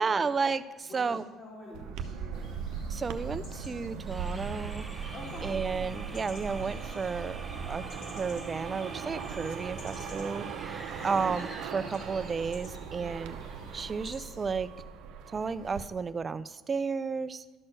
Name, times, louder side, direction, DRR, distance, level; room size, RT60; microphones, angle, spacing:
voice 1, 0.0-1.2 2.9-4.8 5.4-7.4 7.7-7.8 8.1-13.4 13.7-14.7 15.3-17.4, right 5 dB, 30° right, 15 dB, 0.4 m, -32 dB
voice 2, 0.8-2.6 5.1-5.6 11.0-11.2, left 2 dB, 45° left, -6 dB, 2.4 m, -46 dB
sound 1, 1.7-15.8, right 6 dB, 75° right, 0.6 m, -39 dB
sound 2, 2.3-14.5, left 2 dB, 70° left, 2.4 m, -54 dB
sound 3, 4.1-12.6, right 1 dB, 5° right, 0.9 m, -46 dB
12.0 x 4.4 x 6.2 m, 1.3 s
supercardioid pair, 90°, 0 cm